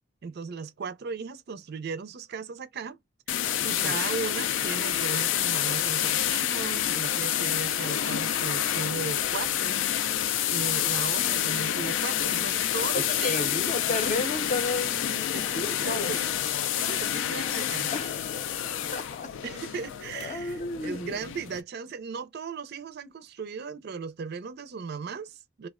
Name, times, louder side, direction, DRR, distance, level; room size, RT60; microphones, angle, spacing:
voice 1, 0.2-3.0 3.6-9.8 10.5-13.5 15.3-16.3 16.7-17.9 19.4-25.7, right 5 dB, 55° right, 0.4 m, -37 dB
sound 1, 3.3-21.6, left 10 dB, 70° left, 0.3 m, -28 dB
voice 2, 3.6-4.0 11.2-11.3 12.9-16.2 17.9-19.6 20.1-21.3, left 2 dB, 40° left, 0.6 m, -33 dB
2.3 x 2.2 x 3.5 m
head